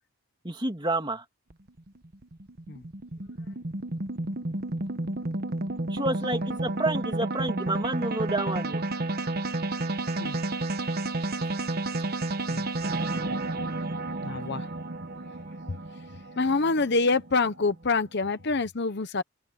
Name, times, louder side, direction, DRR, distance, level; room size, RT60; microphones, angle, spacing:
voice 1, 0.4-1.2 5.9-8.8, right 2 dB, 20° right, 2.6 m, -29 dB
sound 1, 1.5-17.9, right 2 dB, 45° right, 1.1 m, -31 dB
voice 2, 14.2-14.7 15.7-15.8 16.4-19.2, left 3 dB, 50° left, 0.9 m, -26 dB
open air
head